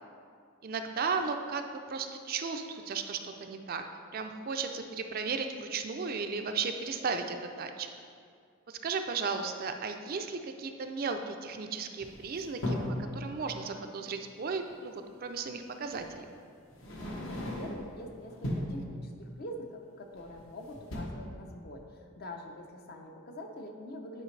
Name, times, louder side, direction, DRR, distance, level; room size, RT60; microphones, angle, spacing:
voice 1, 0.6-3.8 4.1-7.9 8.7-12.8 13.1-16.3, right 5 dB, 45° right, 6 dB, 0.4 m, -35 dB
sound 1, 12.0-13.1 14.7-14.8 15.9-16.1 16.7-17.9 18.3-18.8 20.1-20.5 20.8-21.0, left 1 dB, 65° left, 1.2 m, -36 dB
voice 2, 17.2-24.2, left 1 dB, 50° left, 3 dB, 0.7 m, -44 dB
9.8 x 4.9 x 3.2 m, 2.2 s
head